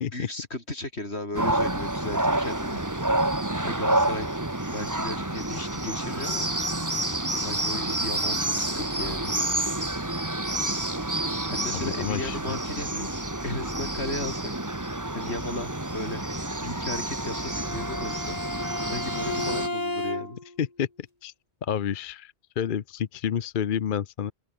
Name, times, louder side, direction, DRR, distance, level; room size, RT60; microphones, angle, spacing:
voice 1, 0.1-2.8 3.6-4.3 4.7-6.5 7.4-9.3 11.5-13.1 13.4-14.5 15.1-16.2 16.6-18.4 18.9-20.4, left 2 dB, 85° left, 6.0 m, -35 dB
sound 1, 1.3-19.7, right 1 dB, 15° right, 1.9 m, -29 dB
voice 2, 11.8-12.6 20.6-20.9 21.2-21.3 21.6-24.3, left 8 dB, 55° left, 0.9 m, -29 dB
Bowed string instrument, 17.2-20.6, left 2 dB, 35° left, 3.0 m, -33 dB
open air
omnidirectional pair, 1.1 m